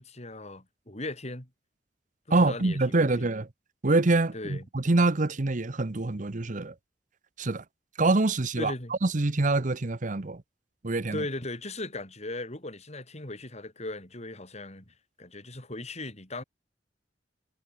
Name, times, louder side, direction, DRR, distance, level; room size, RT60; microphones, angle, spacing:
voice 1, 0.0-1.5 2.3-3.3 4.3-4.6 8.6-8.9 11.1-16.4, left 2 dB, 40° left, 6.1 m, -38 dB
voice 2, 2.3-3.5 3.8-6.7 7.4-7.6 8.0-8.7 9.0-10.4 10.8-11.2, right 2 dB, 45° right, 0.9 m, -25 dB
head